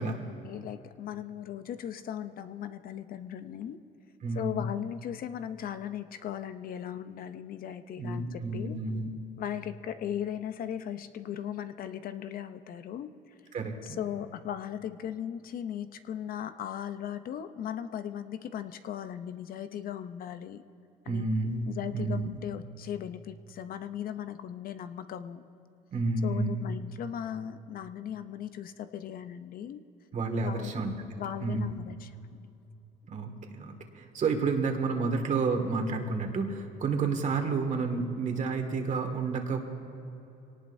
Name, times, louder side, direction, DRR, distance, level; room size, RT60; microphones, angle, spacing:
voice 1, 0.0-3.8 4.3-8.8 9.4-13.1 13.8-20.6 21.1-21.3 21.7-25.4 26.2-29.8 30.4-30.7 31.2-32.5, left 9 dB, 60° left, 10 dB, 0.7 m, -38 dB
voice 2, 4.2-4.6 8.0-9.1 13.5-14.0 21.1-21.7 21.9-22.3 25.9-26.7 30.1-30.9 31.4-31.7 33.1-39.6, right 4 dB, 45° right, 4 dB, 2.0 m, -30 dB
24.0 x 18.5 x 2.7 m, 2.9 s
cardioid pair, 110°, 17 cm